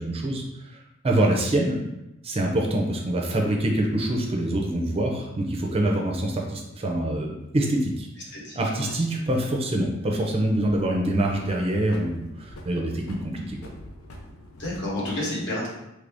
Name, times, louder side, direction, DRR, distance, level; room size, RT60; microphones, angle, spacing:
voice 1, 0.0-1.8 2.2-8.1 8.5-13.6, right 1 dB, 30° right, 1 dB, 0.4 m, -25 dB
sound 1, 6.6-7.1 9.3-10.3 10.7-14.9, left 1 dB, 90° left, 0.6 m, -46 dB
voice 2, 8.3-8.9 10.9-11.0 14.6-15.7, left 1 dB, 60° left, -4 dB, 1.1 m, -30 dB
3.2 x 2.6 x 3.4 m, 0.92 s
head